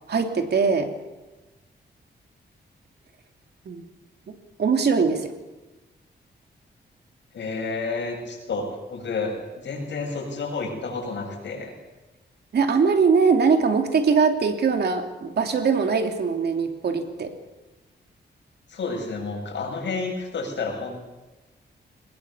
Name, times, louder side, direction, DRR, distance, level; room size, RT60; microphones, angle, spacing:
voice 1, 0.1-0.9 3.6-3.8 4.6-5.3 12.5-17.3, right 5 dB, 65° right, 5 dB, 3.0 m, -21 dB
voice 2, 7.3-11.7 18.7-21.1, left 3 dB, 80° left, 0 dB, 7.9 m, -30 dB
23.0 x 21.0 x 7.3 m, 1.1 s
wide cardioid pair, 130°, 18 cm